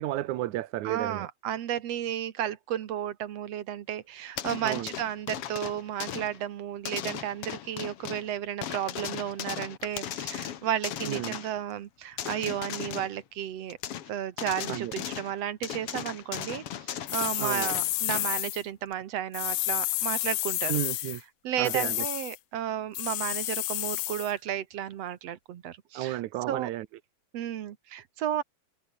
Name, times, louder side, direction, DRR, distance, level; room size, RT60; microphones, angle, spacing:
voice 1, 0.0-1.3 4.6-4.9 11.1-11.4 14.7-14.9 17.4-17.7 20.7-21.2 21.6-22.1 25.9-26.9, right 15 dB, 80° right, 2.3 m, -32 dB
voice 2, 0.8-13.8 14.1-20.7 21.4-26.2 26.5-26.7 27.3-28.4, right 10 dB, 65° right, 2.3 m, -33 dB
sound 1, 4.4-6.4 6.8-8.3 8.6-11.6 12.2-13.2 13.7-14.1 14.4-15.3 15.6-18.4 18.9-19.0, left 10 dB, 60° left, 2.1 m, -37 dB
sound 2, 17.1-18.6 19.3-21.2 21.6-22.4 22.9-24.3, left 19 dB, 85° left, 1.3 m, -30 dB
omnidirectional pair, 3.3 m